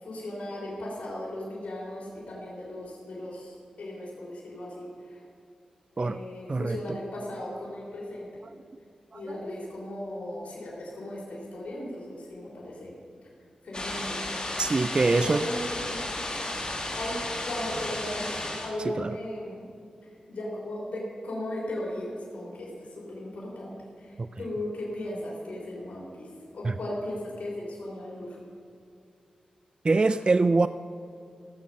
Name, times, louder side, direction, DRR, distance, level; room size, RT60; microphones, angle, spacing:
voice 1, 0.0-5.2 5.9-8.3 9.1-12.9 13.6-14.2 15.1-16.0 17.0-17.2 17.4-19.6 20.0-26.3 26.5-28.4, left 1 dB, 70° left, -4 dB, 3.5 m, -37 dB
voice 2, 6.5-7.0 9.1-9.4 14.6-15.5 19.0-19.1 24.2-24.3 26.6-26.7 29.8-30.7, right 3 dB, 40° right, 13 dB, 0.3 m, -24 dB
sound 1, 13.7-18.7, left 1 dB, 40° left, 2.4 m, -33 dB
16.0 x 7.3 x 6.5 m, 2.4 s
cardioid pair, 50°, 2 cm